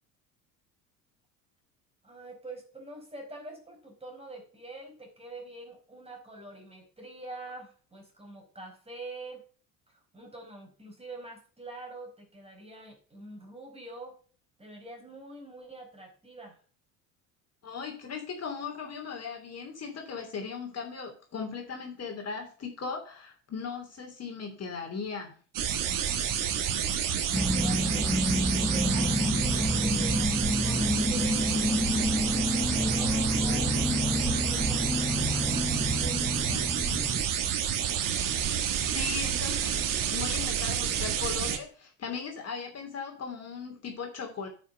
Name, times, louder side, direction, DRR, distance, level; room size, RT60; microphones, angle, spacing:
voice 1, 2.0-9.4 9.9-14.2 14.6-16.6 26.7-31.6 32.0-36.7, right 2 dB, 15° right, 1 dB, 4.8 m, -45 dB
voice 2, 17.6-25.3 38.9-39.8 40.1-44.5, left 5 dB, 35° left, 2 dB, 3.0 m, -38 dB
sound 1, 25.5-41.6, right 9 dB, 50° right, 1.6 m, -29 dB
sound 2, 27.3-37.2, left 1 dB, 5° left, 1.3 m, -29 dB
9.2 x 6.0 x 6.7 m, 0.42 s
figure-of-eight pair, 65°, 43 cm